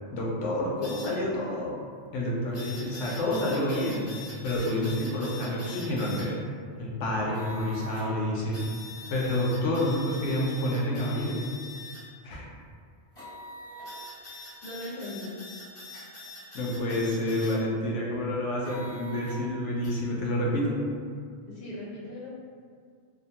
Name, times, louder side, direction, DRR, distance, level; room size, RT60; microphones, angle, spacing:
voice 1, 0.1-1.8 2.1-4.0 4.4-6.4 6.8-8.6 9.1-11.4 12.2-12.5 16.5-20.8, left 1 dB, 85° left, -3 dB, 0.9 m, -28 dB
sound 1, 0.8-1.1 2.5-6.2 7.3-8.1 8.5-12.0 13.2-17.5 18.6-19.4 19.8-19.9, left 2 dB, 30° left, 0.9 m, -43 dB
voice 2, 14.6-15.3 21.5-22.3, left 1 dB, 55° left, -7 dB, 0.9 m, -39 dB
2.6 x 2.1 x 2.7 m, 2.1 s
omnidirectional pair, 1.2 m